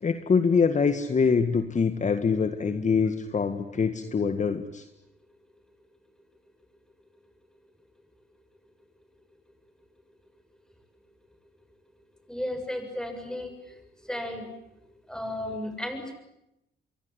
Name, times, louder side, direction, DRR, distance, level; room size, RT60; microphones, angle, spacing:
voice 1, 0.0-4.9, left 5 dB, 35° left, 8 dB, 1.9 m, -24 dB
voice 2, 12.3-13.8 14.0-14.5 15.1-16.2, left 1 dB, 5° left, 7 dB, 7.2 m, -34 dB
26.5 x 23.0 x 9.9 m, 0.85 s
cardioid pair, 90°, 20 cm